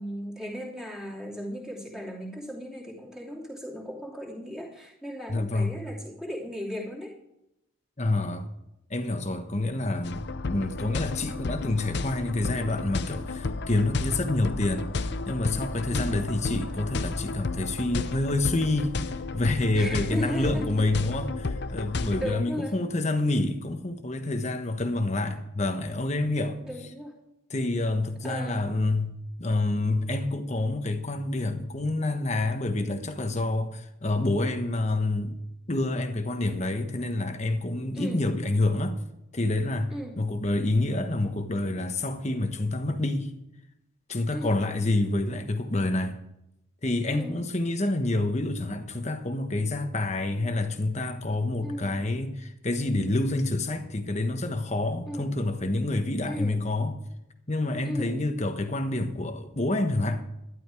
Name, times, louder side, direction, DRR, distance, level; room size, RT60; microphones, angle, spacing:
voice 1, 0.0-7.2 15.9-16.2 19.7-20.9 22.2-22.8 26.6-27.2 28.2-28.7 37.9-38.2 39.9-40.2 44.3-44.6 47.1-47.4 51.6-52.0 55.0-55.3 56.2-56.6 57.8-58.2, equal, 5° right, 2.9 m, -36 dB
voice 2, 5.3-5.7 8.0-8.5 8.9-26.6 27.5-29.1 29.4-35.4 35.7-39.0 39.3-43.3 44.1-46.2 46.8-57.0 57.5-60.2, left 2 dB, 30° left, 1.2 m, -28 dB
sound 1, 10.0-22.3, left 3 dB, 50° left, 0.6 m, -32 dB
12.5 x 11.5 x 4.8 m
head